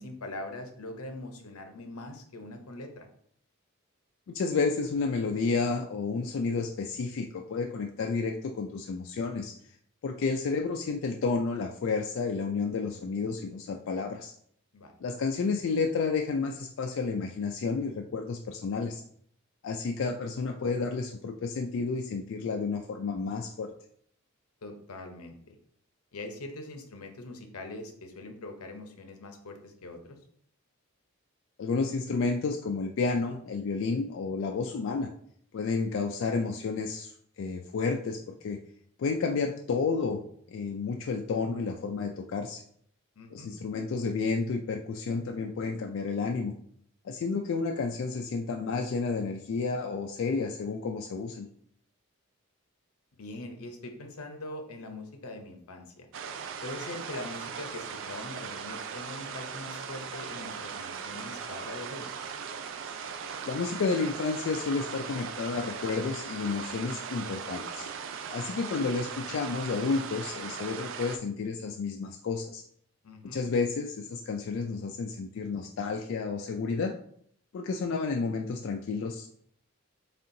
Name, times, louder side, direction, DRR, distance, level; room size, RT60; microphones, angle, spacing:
voice 1, 0.0-3.1 14.7-14.9 24.6-25.6 26.1-30.2 43.2-43.5 53.2-56.1 56.6-62.1 73.0-73.4, left 2 dB, 85° left, 5 dB, 0.7 m, -42 dB
voice 2, 4.3-9.6 10.0-14.3 15.0-19.0 19.6-23.7 31.6-35.1 35.5-38.6 39.0-40.2 40.5-42.6 43.3-46.5 47.0-51.5 63.5-67.9 68.3-72.6 73.3-76.9 77.5-79.3, left 4 dB, 60° left, 3 dB, 0.3 m, -31 dB
sound 1, 56.1-71.2, right 6 dB, 55° right, 0.3 m, -39 dB
4.2 x 3.6 x 2.6 m, 0.64 s
head